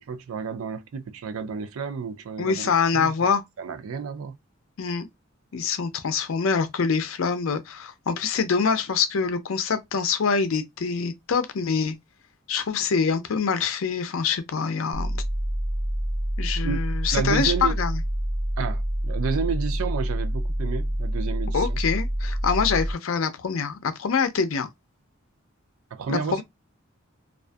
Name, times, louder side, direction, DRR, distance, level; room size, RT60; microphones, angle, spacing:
voice 1, 0.0-3.1 3.6-4.4 16.6-17.8 18.6-21.8 25.9-26.4, right 6 dB, 85° right, 0.4 m, -31 dB
voice 2, 2.4-3.4 4.8-5.1 5.5-12.0 12.5-15.2 16.4-18.0 21.5-24.7 26.1-26.4, left 5 dB, 75° left, 0.5 m, -25 dB
sound 1, 14.9-22.9, equal, 20° right, 0.5 m, -27 dB
2.5 x 2.4 x 2.2 m
head